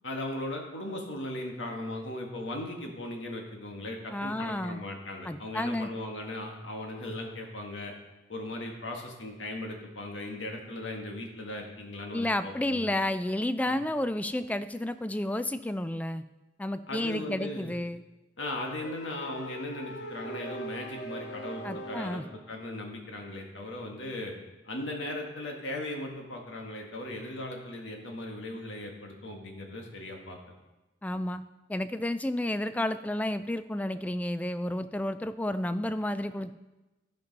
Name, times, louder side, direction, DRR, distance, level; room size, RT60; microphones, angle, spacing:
voice 1, 0.0-7.9 8.3-12.9 13.6-13.7 16.9-17.7 18.4-24.3 24.6-30.5 31.1-31.2, left 1 dB, 85° left, 1 dB, 1.7 m, -38 dB
voice 2, 4.1-4.8 5.3-5.9 12.1-16.2 16.6-18.0 21.6-22.2 31.0-31.4 31.7-36.5, left 1 dB, 10° left, 12 dB, 0.3 m, -31 dB
sound 1, 18.4-22.5, right 1 dB, 65° left, 1.1 m, -41 dB
13.0 x 5.3 x 5.3 m, 1.1 s
head